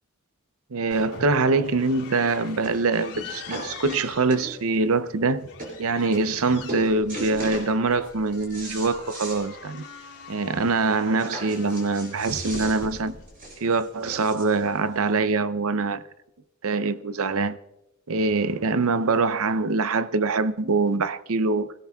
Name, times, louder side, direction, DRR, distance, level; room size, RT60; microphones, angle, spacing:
voice 1, 0.7-5.5 5.8-9.8 10.3-13.2 13.6-16.0 16.6-17.6 18.1-21.7, right 3 dB, 70° right, 0.6 m, -24 dB
sound 1, 0.9-15.0, left 3 dB, 80° left, 2.7 m, -43 dB
sound 2, 1.9-2.0 2.6-2.9 3.1-4.8 5.3-5.4 5.6-5.8 6.1-6.4 6.7-7.7 8.1-9.4 9.8-9.9 10.2-10.3 11.2-14.6 15.5-15.6, right 1 dB, 40° right, 5.6 m, -37 dB
25.0 x 17.5 x 2.4 m
head